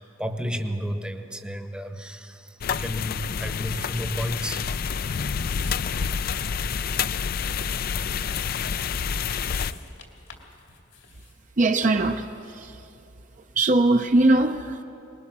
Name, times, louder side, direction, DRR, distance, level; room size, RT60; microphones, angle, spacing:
voice 1, 0.0-4.6, equal, 5° right, 0.9 m, -32 dB
sound 1, 2.6-9.7, left 6 dB, 50° left, 0.4 m, -28 dB
sound 2, 5.5-12.2, left 5 dB, 80° left, 2.3 m, -48 dB
voice 2, 11.6-12.9 13.4-14.8, right 2 dB, 45° right, 0.6 m, -21 dB
23.5 x 20.5 x 6.1 m
head